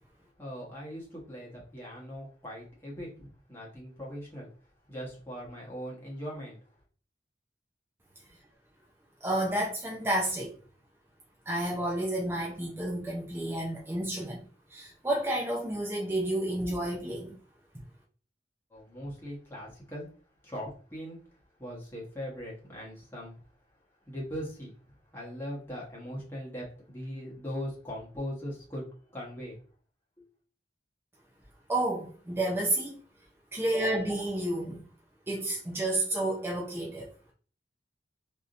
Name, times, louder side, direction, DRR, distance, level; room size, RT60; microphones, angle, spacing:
voice 1, 0.4-4.5 4.9-6.6 18.7-20.1 20.4-21.2 21.6-23.3 24.1-24.7 25.1-28.8 29.1-29.6, equal, 15° left, 1.2 m, -40 dB
voice 2, 9.2-10.5 11.5-14.4 14.7-17.4 31.7-33.0 33.5-34.8 35.3-37.3, right 1 dB, 15° right, 0.5 m, -30 dB
3.5 x 2.8 x 2.5 m
head